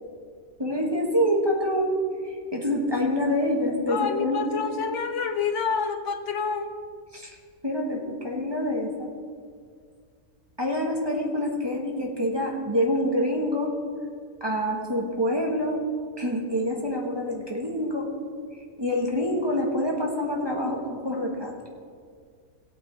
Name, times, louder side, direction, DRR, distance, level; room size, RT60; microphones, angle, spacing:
voice 1, 0.6-2.0 2.2-4.6 7.1-7.3 7.6-9.1 10.6-13.7 14.4-15.8 16.2-18.1 18.8-21.5, left 1 dB, 15° right, -1 dB, 1.5 m, -26 dB
voice 2, 3.9-6.7, left 5 dB, 60° left, 7 dB, 0.8 m, -28 dB
17.5 x 8.6 x 3.5 m, 2.1 s
omnidirectional pair, 1.7 m